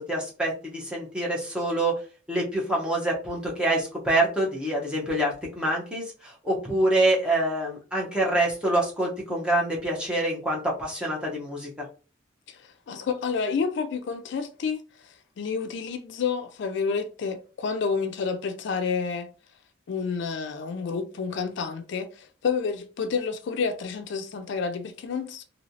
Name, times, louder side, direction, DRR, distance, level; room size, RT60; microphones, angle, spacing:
voice 1, 0.1-1.9 2.3-11.8, right 1 dB, 5° right, 0.8 m, -26 dB
voice 2, 12.5-19.3 19.9-25.4, left 5 dB, 65° left, 0.4 m, -29 dB
3.0 x 2.7 x 2.6 m
head